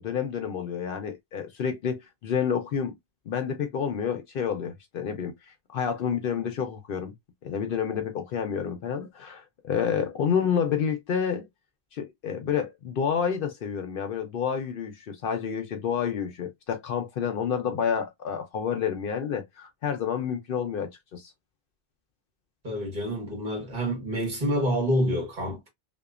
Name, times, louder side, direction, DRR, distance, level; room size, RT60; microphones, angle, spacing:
voice 1, 0.0-2.9 3.3-5.3 5.7-7.1 7.4-11.5 11.9-21.3, left 7 dB, 65° left, 0.7 m, -29 dB
voice 2, 22.6-25.7, equal, 45° right, 1.3 m, -27 dB
2.9 x 2.0 x 2.3 m
omnidirectional pair, 1.1 m